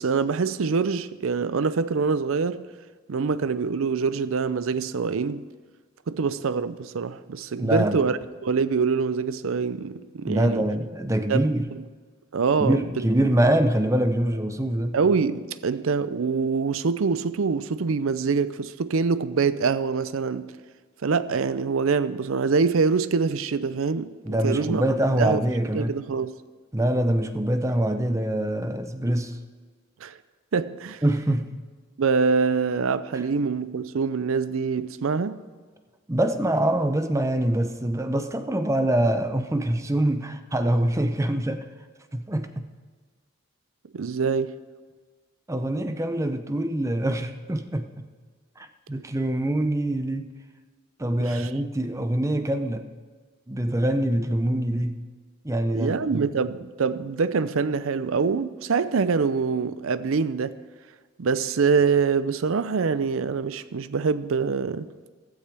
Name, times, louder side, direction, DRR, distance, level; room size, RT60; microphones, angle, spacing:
voice 1, 0.0-2.7 3.1-5.5 6.1-10.7 11.3-11.8 12.3-13.1 14.9-20.5 21.0-24.8 25.2-25.4 25.7-26.4 30.0-30.2 30.5-31.0 32.0-35.4 43.9-44.6 51.2-51.5 55.7-60.6 61.2-65.1, right 5 dB, 70° right, 0.5 m, -25 dB
voice 2, 7.6-8.0 10.3-11.7 12.6-15.0 24.3-26.0 26.7-29.4 31.0-31.6 36.1-41.7 42.1-42.7 45.5-48.1 48.6-50.3 51.0-52.9 53.5-55.0 55.4-56.3, right 1 dB, 15° right, 0.6 m, -24 dB
15.0 x 13.0 x 3.5 m
head